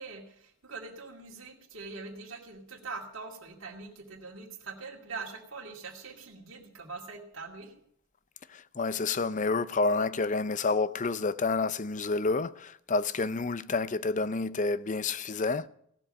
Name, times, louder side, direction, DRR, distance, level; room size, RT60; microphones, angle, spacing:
voice 1, 0.0-7.7, right 4 dB, 60° right, 2.4 m, -43 dB
voice 2, 8.5-15.7, left 3 dB, 35° left, 0.6 m, -29 dB
17.0 x 7.2 x 8.6 m
head